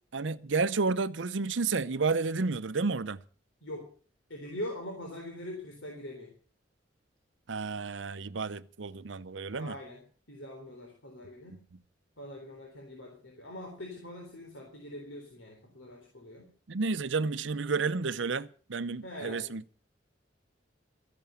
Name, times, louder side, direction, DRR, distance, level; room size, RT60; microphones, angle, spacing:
voice 1, 0.1-3.2 7.5-9.8 16.7-19.8, right 4 dB, 70° right, 0.7 m, -31 dB
voice 2, 4.3-6.3 9.6-11.6 12.2-16.5 19.0-19.5, left 1 dB, 80° left, 3.8 m, -43 dB
14.0 x 11.0 x 7.0 m
head